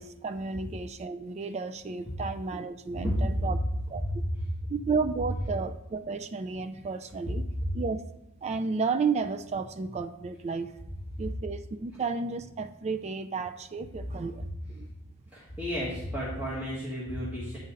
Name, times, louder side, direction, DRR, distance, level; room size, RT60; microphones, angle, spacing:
voice 1, 0.0-3.6 3.9-4.0 4.7-7.4 7.7-8.0 8.4-10.7 11.2-14.5 14.7-14.9, right 4 dB, 30° right, 9 dB, 0.3 m, -32 dB
voice 2, 2.9-3.5 4.0-4.7 7.2-7.6 11.2-11.3 15.3-17.6, equal, 10° right, -8 dB, 1.6 m, -31 dB
9.1 x 5.4 x 3.8 m, 0.89 s
head